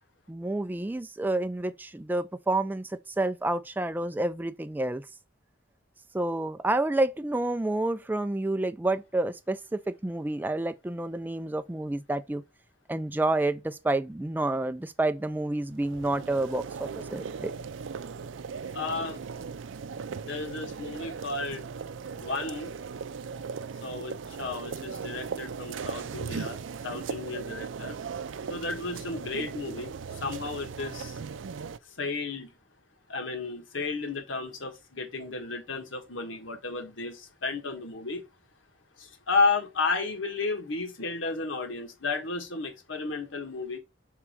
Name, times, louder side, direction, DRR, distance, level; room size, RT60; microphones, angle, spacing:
voice 1, 0.3-5.0 6.1-12.4 12.9-17.5, right 2 dB, 10° right, 0.3 m, -29 dB
sound 1, 15.7-31.8, right 5 dB, 75° right, 0.4 m, -38 dB
voice 2, 18.7-19.2 20.2-21.6 22.2-22.7 23.8-28.0 28.5-31.2 31.9-32.5 33.1-38.2 39.0-43.8, left 3 dB, 80° left, 1.5 m, -33 dB
6.0 x 3.7 x 4.4 m
head